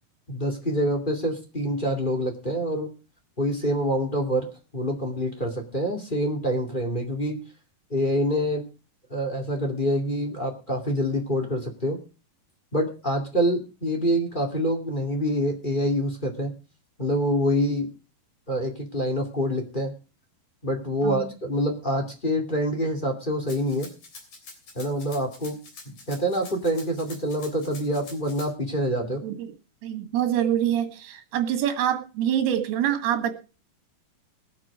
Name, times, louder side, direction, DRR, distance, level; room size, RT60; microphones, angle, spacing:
voice 1, 0.3-2.9 3.4-4.5 4.7-7.4 7.9-8.6 9.1-12.0 12.7-16.5 17.0-17.9 18.5-19.9 20.6-23.9 24.7-25.6 25.9-29.2, equal, 15° left, 1 dB, 1.8 m, -26 dB
voice 2, 21.0-21.3 29.2-29.5 29.8-33.3, right 10 dB, 85° right, 6 dB, 3.7 m, -25 dB
Rattle (instrument), 23.5-28.5, left 3 dB, 45° left, 4.4 m, -45 dB
20.5 x 7.9 x 4.9 m, 0.33 s
omnidirectional pair, 4.4 m